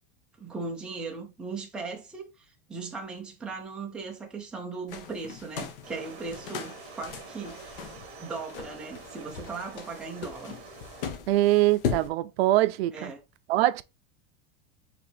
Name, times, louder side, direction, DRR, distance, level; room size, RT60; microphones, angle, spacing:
voice 1, 0.4-7.9 8.2-10.6 12.9-13.2, right 4 dB, 5° right, 0.5 m, -38 dB
sound 1, 4.9-12.1, left 7 dB, 65° left, 1.0 m, -38 dB
sound 2, 5.8-11.1, right 5 dB, 55° right, 1.3 m, -47 dB
voice 2, 11.3-13.1 13.5-13.8, right 16 dB, 80° right, 0.5 m, -23 dB
4.8 x 3.3 x 3.3 m
supercardioid pair, 175°, 30 cm